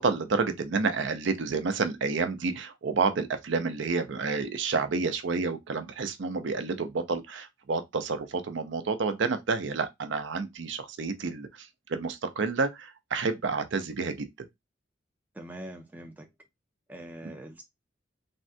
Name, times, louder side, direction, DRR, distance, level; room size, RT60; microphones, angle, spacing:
voice 1, 0.0-14.3, right 4 dB, 65° right, 0.5 m, -29 dB
voice 2, 15.3-16.3 16.9-17.6, right 1 dB, 10° right, 0.4 m, -43 dB
3.4 x 2.1 x 2.6 m
head